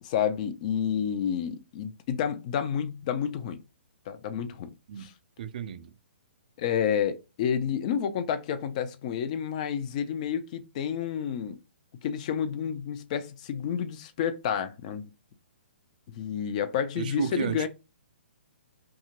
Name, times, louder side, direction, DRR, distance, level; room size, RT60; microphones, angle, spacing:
voice 1, 0.0-3.6 4.1-4.7 5.0-5.1 6.6-11.6 12.0-15.1 16.1-17.7, left 8 dB, 40° left, 0.5 m, -30 dB
voice 2, 5.4-5.9 17.0-17.7, right 7 dB, 50° right, 0.3 m, -32 dB
2.8 x 2.4 x 2.9 m
figure-of-eight pair, 125°, 6 cm